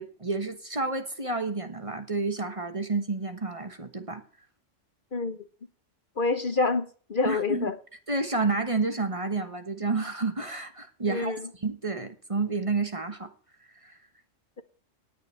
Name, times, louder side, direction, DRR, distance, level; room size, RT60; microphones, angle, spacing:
voice 1, 0.0-4.2 7.2-7.7 8.1-11.3 11.6-13.3 13.8-14.0, right 3 dB, 25° right, 1.2 m, -30 dB
voice 2, 5.1-5.4 6.2-7.8 11.1-11.5, left 3 dB, 45° left, 1.0 m, -27 dB
18.0 x 10.0 x 3.3 m
omnidirectional pair, 1.3 m